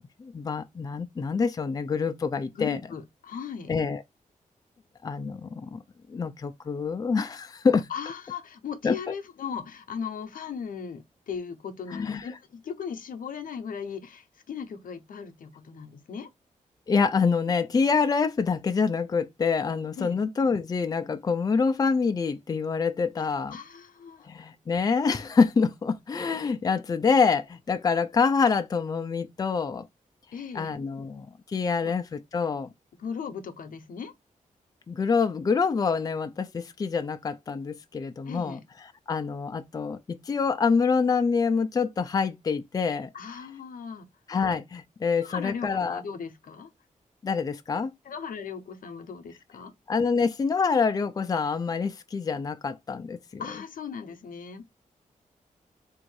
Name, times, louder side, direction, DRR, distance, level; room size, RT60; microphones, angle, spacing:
voice 1, 0.2-2.8 3.7-4.0 5.0-5.8 6.1-7.9 8.8-9.0 11.9-12.3 16.9-23.6 24.3-29.9 30.5-32.7 34.9-43.1 44.3-46.0 47.2-47.9 49.9-53.4, left 5 dB, 25° left, 0.4 m, -26 dB
voice 2, 2.5-3.7 7.9-16.3 20.0-20.2 23.5-24.3 30.3-30.8 33.0-34.1 38.3-38.6 43.1-44.1 45.2-46.7 48.0-49.7 53.4-54.6, left 6 dB, 90° left, 0.8 m, -37 dB
3.7 x 2.6 x 4.6 m
wide cardioid pair, 150°, 14 cm